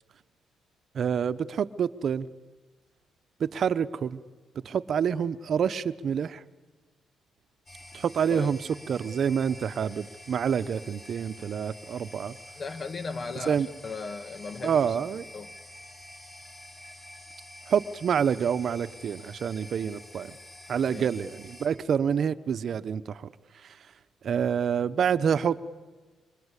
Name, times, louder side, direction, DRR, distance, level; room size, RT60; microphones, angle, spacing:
voice 1, 0.9-2.3 3.4-4.2 4.6-6.4 7.9-8.6 8.9-12.3 13.5-13.7 14.6-15.2 17.7-20.4 20.7-23.3 23.6-23.8 24.2-25.6, right 7 dB, 55° right, 0.9 m, -27 dB
sound 1, 7.7-21.7, left 1 dB, 20° left, 6.8 m, -48 dB
voice 2, 12.6-15.0 15.3-15.5 20.9-21.1, left 4 dB, 40° left, 1.6 m, -37 dB
26.5 x 25.0 x 8.3 m
cardioid pair, 90°, 0 cm